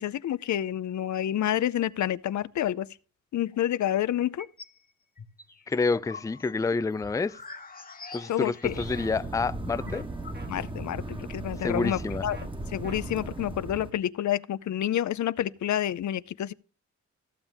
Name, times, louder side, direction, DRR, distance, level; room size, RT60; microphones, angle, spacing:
voice 1, 0.0-2.9 3.3-4.5 8.3-8.7 10.5-12.4 12.7-16.5, left 11 dB, 70° left, 0.6 m, -28 dB
sound 1, 4.2-4.8 5.2-9.3 9.6-9.7 9.9-10.8, left 4 dB, 30° left, 1.3 m, -45 dB
voice 2, 5.7-7.4 8.1-10.0 11.6-12.3, left 4 dB, 10° left, 0.4 m, -28 dB
sound 2, 8.6-13.9, right 2 dB, 15° right, 1.4 m, -37 dB
sound 3, 8.9-9.1 9.9-10.0 10.3-10.5 11.8-12.0 12.3-12.5 12.8-13.0, right 2 dB, 35° right, 1.5 m, -46 dB
14.5 x 7.2 x 3.4 m
cardioid pair, 95°, 30 cm